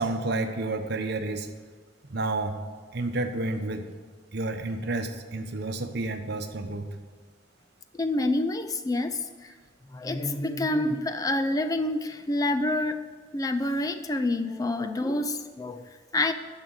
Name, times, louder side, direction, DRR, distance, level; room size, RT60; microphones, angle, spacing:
voice 1, 0.0-1.5 2.1-2.6 2.9-3.9 4.3-6.9, right 2 dB, 60° right, 7 dB, 1.0 m, -30 dB
voice 2, 7.9-9.5 9.9-13.0 13.3-16.3, left 2 dB, 20° left, 8 dB, 0.4 m, -27 dB
10.0 x 6.6 x 7.9 m, 1.5 s
head